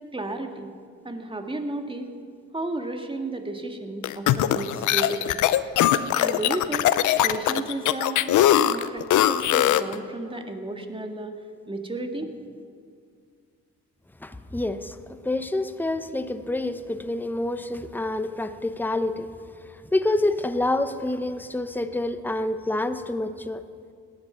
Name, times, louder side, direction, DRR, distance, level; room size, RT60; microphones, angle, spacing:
voice 1, 0.1-0.7 1.0-2.1 2.5-5.4 6.1-6.9 7.2-8.3 8.6-11.3 11.7-12.3, right 2 dB, 15° right, 5 dB, 1.9 m, -33 dB
sound 1, 4.0-9.9, left 12 dB, 70° left, 0.7 m, -21 dB
voice 2, 14.2-15.0 15.2-19.3 19.9-23.6, left 2 dB, 5° left, 10 dB, 0.9 m, -27 dB
17.5 x 11.0 x 5.8 m, 2.1 s
supercardioid pair, 55°, 31 cm